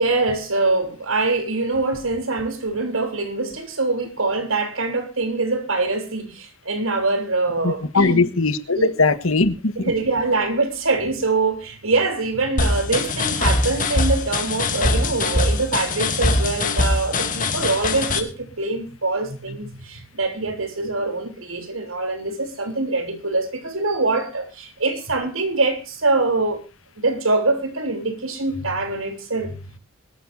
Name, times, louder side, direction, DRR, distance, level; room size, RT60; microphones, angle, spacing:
voice 1, 0.0-8.3 8.7-9.0 9.8-26.6 27.0-29.6, right 3 dB, 85° right, 3.7 m, -24 dB
voice 2, 7.6-9.9, left 3 dB, 90° left, 1.5 m, -20 dB
sound 1, 12.6-18.2, left 2 dB, 40° left, 2.5 m, -22 dB
23.0 x 13.0 x 2.7 m
head